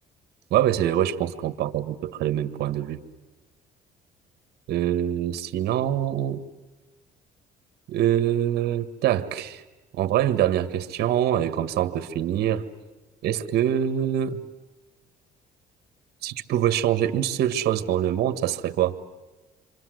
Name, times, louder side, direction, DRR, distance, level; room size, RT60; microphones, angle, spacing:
voice 1, 0.5-3.0 4.7-6.4 7.9-9.6 9.9-12.7 13.2-14.4 16.2-18.9, right 11 dB, 70° right, 10 dB, 1.7 m, -24 dB
28.5 x 25.0 x 7.9 m, 1.2 s
cardioid pair, 110°, 17 cm